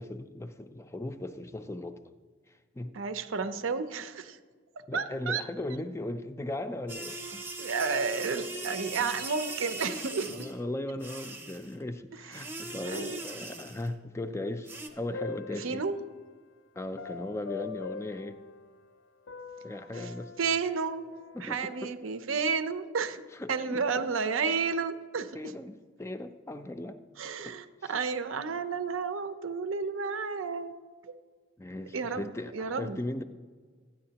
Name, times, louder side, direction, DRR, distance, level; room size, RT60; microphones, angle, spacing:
voice 1, 0.0-2.0 2.5-3.0 4.9-7.4 9.0-9.2 10.3-14.7 14.9-15.8 16.7-18.4 19.6-20.3 21.3-21.9 23.3-24.1 25.3-27.0 27.4-28.0 31.6-33.2, left 1 dB, 15° left, 9 dB, 0.3 m, -38 dB
voice 2, 2.9-4.4 4.9-5.4 7.6-10.5 12.8-13.2 15.6-16.0 20.0-20.1 20.4-21.1 21.4-23.2 23.5-25.5 27.2-30.7 31.9-33.0, right 5 dB, 90° right, 10 dB, 0.6 m, -31 dB
sound 1, 6.9-10.6 11.0-11.7 12.3-13.9 14.7-14.9, right 2 dB, 10° right, 0.7 m, -40 dB
sound 2, 14.9-16.3 17.0-19.0 19.3-22.2, left 5 dB, 75° left, 0.5 m, -44 dB
13.0 x 9.5 x 2.9 m, 1.5 s
head